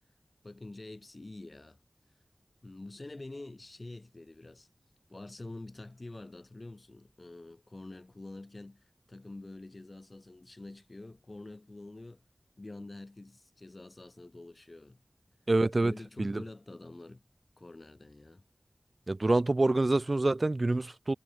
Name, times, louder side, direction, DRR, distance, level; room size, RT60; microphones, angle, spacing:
voice 1, 0.4-1.8 2.6-4.7 5.1-12.2 12.6-15.0 15.8-17.2 17.6-18.4, left 2 dB, 45° left, 2.0 m, -47 dB
voice 2, 15.5-15.9 16.2-16.4 19.1-21.1, right 2 dB, 45° right, 0.3 m, -26 dB
wide cardioid pair, 70°, 0 cm